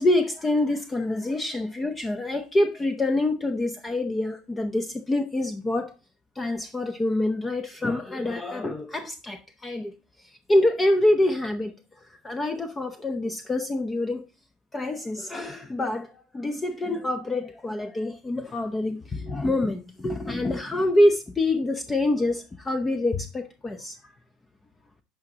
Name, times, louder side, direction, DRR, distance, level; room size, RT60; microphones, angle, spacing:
voice 1, 0.0-5.9 6.4-10.0 10.5-11.7 12.2-14.2 14.7-24.0, left 1 dB, 20° left, 0.8 m, -26 dB
10.5 x 5.0 x 2.8 m
hypercardioid pair, 85°, 0 cm